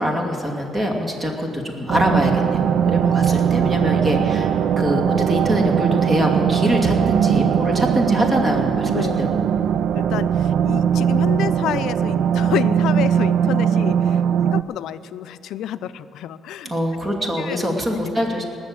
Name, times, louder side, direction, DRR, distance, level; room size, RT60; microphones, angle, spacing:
voice 1, 0.0-4.5 4.8-9.5 16.6-18.4, equal, 25° right, 1 dB, 2.6 m, -23 dB
sound 1, 1.9-14.6, right 8 dB, 75° right, 0.4 m, -20 dB
voice 2, 8.9-9.3 9.9-16.7 17.4-17.6 18.2-18.3, left 11 dB, 85° left, 14 dB, 0.4 m, -29 dB
19.5 x 7.1 x 8.7 m, 2.6 s
cardioid pair, 90°, 0 cm